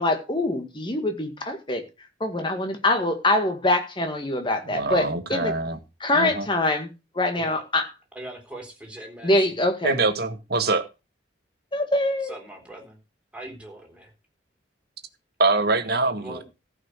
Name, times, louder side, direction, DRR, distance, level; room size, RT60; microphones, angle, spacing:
voice 1, 0.0-1.8 2.2-5.5 6.0-6.9 7.2-7.8 9.2-10.0 11.7-12.3, left 1 dB, 25° left, 1.9 m, -24 dB
voice 2, 4.6-5.8 6.1-6.5 9.8-10.8 15.4-16.4, right 3 dB, 55° right, 1.6 m, -24 dB
voice 3, 8.1-9.5 12.2-13.0 13.3-14.1 16.2-16.4, right 1 dB, 5° right, 3.7 m, -40 dB
14.5 x 5.6 x 6.5 m
head